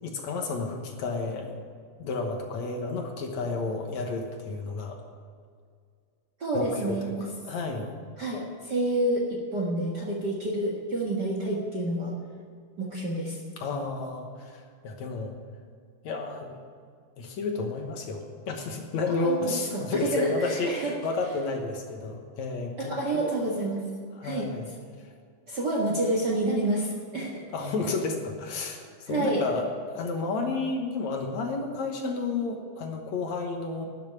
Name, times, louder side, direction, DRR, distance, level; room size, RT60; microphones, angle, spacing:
voice 1, 0.0-1.6 2.0-5.0 6.5-7.9 13.6-15.3 16.0-16.6 17.2-23.3 24.2-24.6 27.5-33.9, left 3 dB, 65° left, 3 dB, 2.3 m, -31 dB
voice 2, 6.4-7.3 8.2-12.1 12.8-13.4 19.1-20.9 22.8-23.8 24.2-24.5 25.5-27.4 29.1-29.4, right 1 dB, 45° right, -2 dB, 1.5 m, -28 dB
12.5 x 7.4 x 9.8 m, 2.1 s
omnidirectional pair, 3.8 m